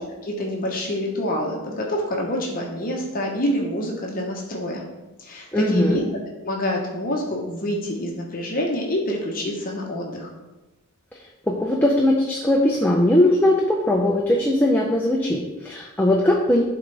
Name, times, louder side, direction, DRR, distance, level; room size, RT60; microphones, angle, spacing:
voice 1, 0.0-4.8 5.2-10.3, equal, 40° left, -1 dB, 0.9 m, -27 dB
voice 2, 5.5-6.0 11.5-16.6, left 1 dB, 10° left, -1 dB, 0.5 m, -19 dB
11.5 x 3.9 x 3.3 m, 1.1 s
head